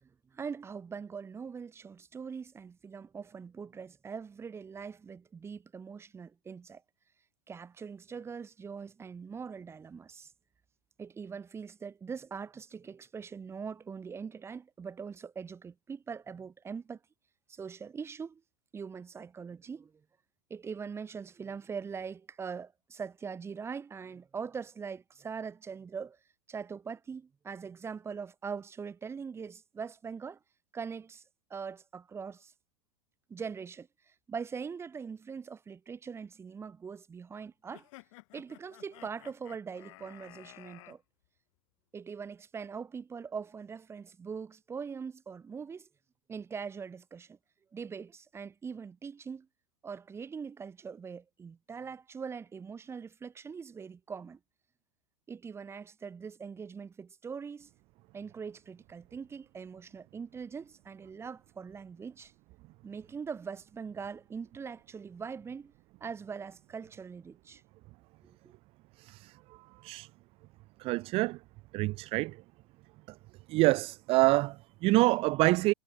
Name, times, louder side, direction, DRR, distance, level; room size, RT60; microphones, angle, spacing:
voice 1, 0.0-6.8 7.5-10.3 11.0-17.0 17.5-18.4 18.7-19.9 20.5-26.2 26.5-30.4 30.7-31.2 31.5-32.5 33.3-33.9 34.3-37.9 38.3-41.0 41.9-45.9 46.3-47.4 47.7-49.5 49.8-54.4 55.3-57.7 58.1-62.3 62.8-65.7 66.0-67.6 68.2-68.4, right 6 dB, 15° right, 1.3 m, -42 dB
sound 1, 37.7-41.0, left 23 dB, 55° left, 8.0 m, -53 dB
voice 2, 69.0-69.3 69.8-70.1 70.8-71.4 71.7-72.4 73.5-75.7, right 21 dB, 30° right, 0.4 m, -26 dB
supercardioid pair, 145°, 19 cm